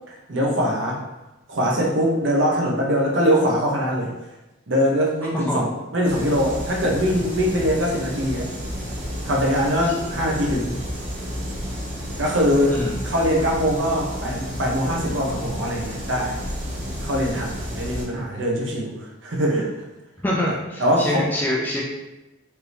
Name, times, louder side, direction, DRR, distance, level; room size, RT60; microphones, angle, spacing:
voice 1, 0.1-1.0 1.5-4.1 4.7-8.5 9.2-10.8 12.2-12.8 13.0-16.4 17.0-18.9 19.2-19.7 20.5-21.2, equal, 70° right, -2 dB, 0.9 m, -22 dB
sound 1, 6.0-18.0, equal, 40° right, 1.3 m, -31 dB
voice 2, 20.2-21.8, left 1 dB, 10° left, -4 dB, 0.4 m, -25 dB
4.5 x 2.8 x 3.4 m, 1.0 s
head